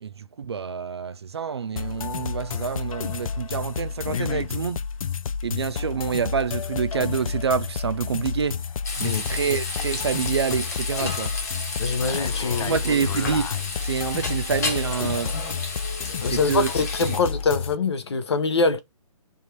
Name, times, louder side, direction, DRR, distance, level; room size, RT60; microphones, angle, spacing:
voice 1, 0.0-4.8 5.4-8.6 9.0-11.3 12.6-15.4 16.2-16.7 17.1-17.2, right 6 dB, 50° right, 0.4 m, -27 dB
sound 1, 1.8-17.8, left 6 dB, 70° left, 0.4 m, -30 dB
Frying (food), 8.8-17.2, left 3 dB, 30° left, 1.2 m, -32 dB
voice 2, 11.8-12.8 16.2-18.8, left 4 dB, 50° left, 0.8 m, -24 dB
3.4 x 2.6 x 4.5 m
hypercardioid pair, 175°, 18 cm